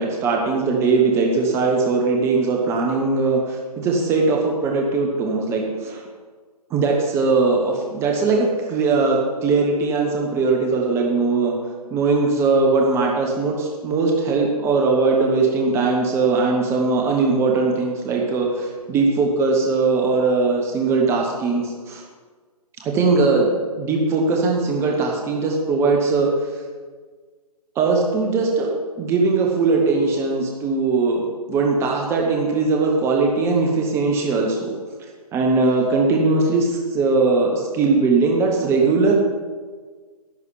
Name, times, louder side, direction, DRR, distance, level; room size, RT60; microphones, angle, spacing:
voice 1, 0.0-6.0 6.7-11.5 11.9-22.0 22.8-23.5 23.8-26.3 27.7-28.7 29.0-31.2 31.5-34.7 35.0-39.1, right 3 dB, 15° right, 0 dB, 1.2 m, -20 dB
11.0 x 6.2 x 8.9 m, 1.5 s
figure-of-eight pair, 140°, 20 cm